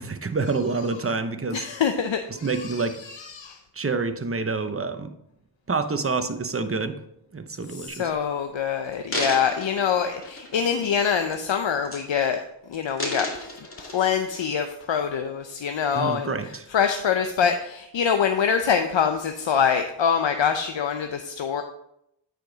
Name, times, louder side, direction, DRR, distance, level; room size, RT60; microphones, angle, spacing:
voice 1, 0.0-1.7 2.4-3.0 3.7-5.1 5.7-7.0 7.3-8.1 15.9-16.7, right 4 dB, 30° right, 8 dB, 0.8 m, -27 dB
voice 2, 1.5-3.6 7.7-12.4 12.7-13.5 13.8-16.3 16.7-21.6, left 7 dB, 75° left, 6 dB, 0.7 m, -25 dB
sound 1, 8.2-8.3 8.8-11.0 11.3-11.6 11.9-12.4 12.7-14.4 15.0-15.1, left 1 dB, 30° left, 2.4 m, -34 dB
8.8 x 5.2 x 3.9 m, 0.78 s
cardioid pair, 40°, 46 cm